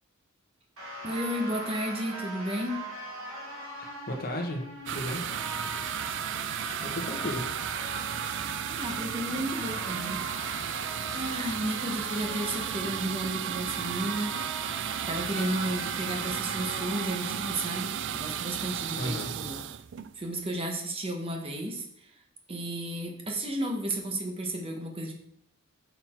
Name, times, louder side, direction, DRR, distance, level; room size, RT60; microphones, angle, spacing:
sound 1, 0.8-17.5, right 1 dB, 75° right, 2.6 m, -40 dB
voice 1, 1.0-2.8 8.7-10.8 11.1-14.3 15.1-19.6 20.2-21.9 22.5-25.1, right 1 dB, 25° right, 2 dB, 1.1 m, -33 dB
voice 2, 3.8-5.2 6.6-7.5 19.0-19.3, left 1 dB, 45° left, 3 dB, 1.2 m, -35 dB
sound 2, 4.9-20.6, right 9 dB, 60° right, 0.4 m, -34 dB
6.5 x 5.8 x 4.4 m, 0.71 s
head